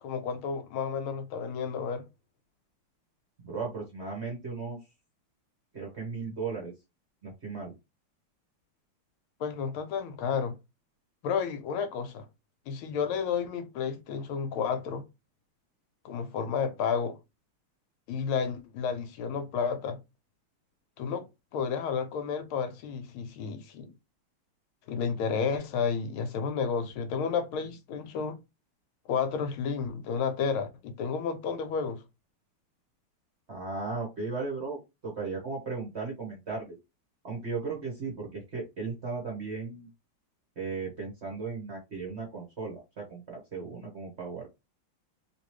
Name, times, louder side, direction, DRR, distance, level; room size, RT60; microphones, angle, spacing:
voice 1, 0.0-2.0 9.4-10.6 11.2-12.2 12.7-15.0 16.0-17.2 18.1-20.0 21.0-21.3 21.5-23.9 24.9-28.4 29.1-32.0, left 6 dB, 75° left, 1.5 m, -31 dB
voice 2, 3.4-4.8 5.7-6.7 7.2-7.7 33.5-36.8 37.2-39.9 40.6-44.5, right 4 dB, 45° right, 0.9 m, -36 dB
3.2 x 3.0 x 3.0 m
omnidirectional pair, 2.4 m